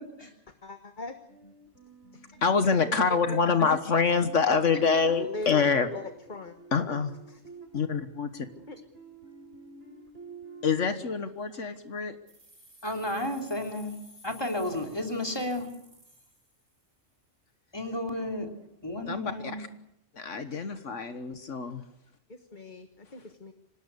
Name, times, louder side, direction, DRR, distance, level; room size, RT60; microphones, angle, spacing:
voice 1, 0.6-1.2 2.8-3.4 4.8-6.8 7.3-7.4 8.7-8.8 22.3-23.5, left 3 dB, 40° left, 7 dB, 1.5 m, -41 dB
sound 1, 1.3-11.1, right 4 dB, 65° right, 4.7 m, -51 dB
voice 2, 2.4-5.9 6.7-7.1 7.7-8.5 10.6-12.2 19.1-19.7 20.1-21.8, left 5 dB, 75° left, 9 dB, 1.7 m, -26 dB
sound 2, 12.3-17.1, left 1 dB, 80° right, 4.4 m, -55 dB
voice 3, 12.8-13.9 14.2-15.7 17.7-18.5 18.8-19.6, left 1 dB, 20° left, 3 dB, 3.1 m, -32 dB
26.0 x 19.0 x 8.3 m, 0.78 s
omnidirectional pair, 1.3 m